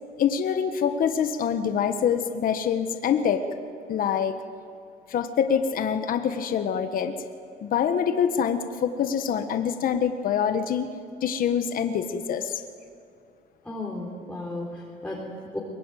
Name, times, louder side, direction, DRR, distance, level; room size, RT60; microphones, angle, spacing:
voice 1, 0.2-3.4 3.9-4.4 5.1-7.1 7.6-10.9 11.2-12.5, left 8 dB, 55° left, 8 dB, 1.4 m, -25 dB
voice 2, 13.7-15.6, left 2 dB, 5° left, -4 dB, 3.9 m, -34 dB
23.5 x 21.0 x 9.3 m, 2.4 s
cardioid pair, 110°, 17 cm